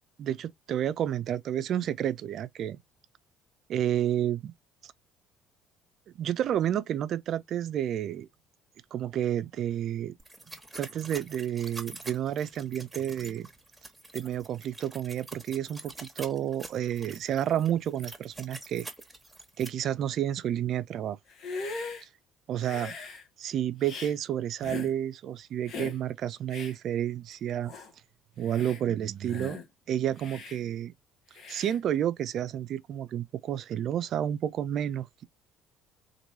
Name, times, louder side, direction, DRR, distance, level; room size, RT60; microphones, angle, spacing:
voice 1, 0.2-2.8 3.7-4.5 4.8-4.9 6.2-8.3 8.9-10.1 10.8-13.5 14.1-18.9 19.6-21.2 22.5-22.9 23.4-27.7 28.4-29.6 29.9-30.9 31.5-35.2, right 10 dB, 55° right, 0.4 m, -30 dB
sound 1, 10.2-19.7, right 2 dB, 10° right, 1.0 m, -46 dB
Hiss, 21.3-22.0 22.6-23.2 23.8-24.1 24.6-24.9 25.7-26.0 26.5-26.7 27.3-27.4 27.7-27.9 28.4-28.8 29.3-29.7 30.2-30.6 31.3-31.8, left 4 dB, 55° left, 0.9 m, -39 dB
2.9 x 2.6 x 2.7 m
hypercardioid pair, 55°, 0 cm